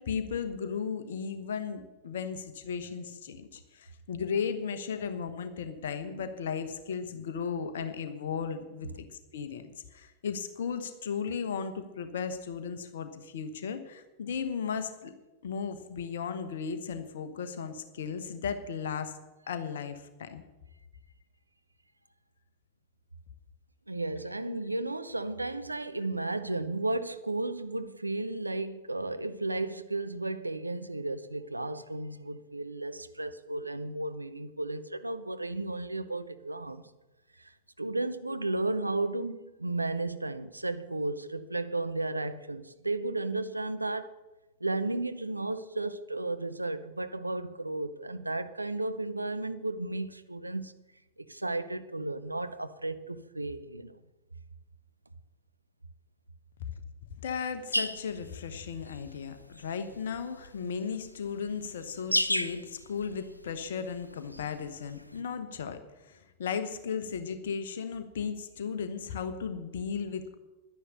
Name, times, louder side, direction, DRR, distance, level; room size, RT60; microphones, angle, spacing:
voice 1, 0.0-9.0 9.3-15.1 15.4-19.1 19.5-20.4 57.2-70.3, left 6 dB, 60° left, 1.1 m, -35 dB
voice 2, 23.9-36.8 37.4-37.5 37.8-44.1 44.6-50.8 51.2-53.9, right 2 dB, 85° right, 0.6 m, -34 dB
sound 1, 57.7-65.2, left 1 dB, 85° left, 0.4 m, -35 dB
11.0 x 10.0 x 6.7 m
figure-of-eight pair, 90°, 0 cm